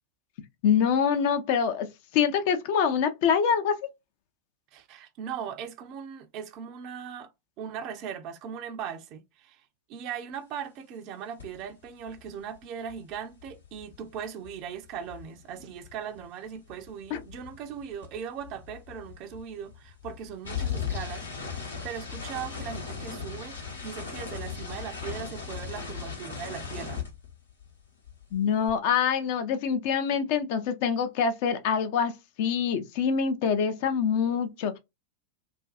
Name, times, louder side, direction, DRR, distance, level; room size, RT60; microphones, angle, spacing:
voice 1, 0.6-1.9 2.1-3.7 17.1-17.2 28.3-32.1 32.4-34.8, left 7 dB, 45° left, 0.5 m, -25 dB
voice 2, 4.7-7.3 7.6-9.6 9.9-27.0, right 8 dB, 40° right, 0.4 m, -39 dB
sound 1, 11.4-11.6 11.9-16.3 16.5-27.8 28.0-28.7, left 6 dB, 70° left, 0.9 m, -38 dB
2.5 x 2.2 x 2.3 m
figure-of-eight pair, 90°, 0 cm